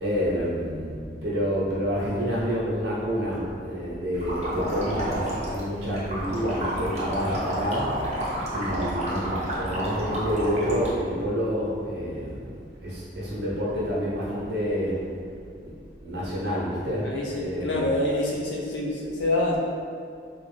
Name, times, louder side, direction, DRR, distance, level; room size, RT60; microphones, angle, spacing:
voice 1, 0.0-7.9 8.5-12.5 12.8-14.9 15.6-15.7 16.0-17.9, equal, 75° right, -7 dB, 1.0 m, -28 dB
sound 1, 4.1-10.9, right 1 dB, 40° right, 0.8 m, -30 dB
voice 2, 17.0-19.6, left 1 dB, 85° left, -4 dB, 0.7 m, -27 dB
3.4 x 2.5 x 3.3 m, 2.3 s
head